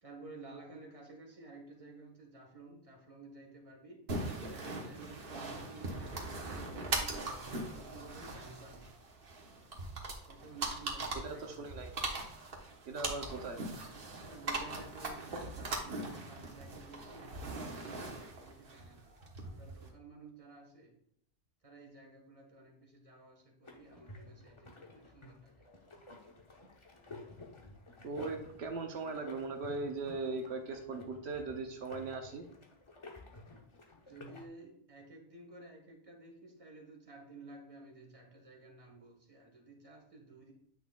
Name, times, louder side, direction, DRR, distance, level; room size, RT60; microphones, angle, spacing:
voice 1, 0.0-4.0 4.4-8.9 10.3-11.7 14.2-20.9 21.6-25.6 34.1-40.5, right 3 dB, 35° right, 0 dB, 1.4 m, -53 dB
sound 1, 4.1-19.9, right 2 dB, 60° right, 1.3 m, -41 dB
voice 2, 11.1-11.9 12.9-13.6 28.0-32.4, right 3 dB, 85° right, 4 dB, 1.0 m, -39 dB
sound 2, 23.6-34.5, left 2 dB, 30° left, 0.8 m, -52 dB
8.9 x 6.1 x 2.3 m, 0.66 s
omnidirectional pair, 1.1 m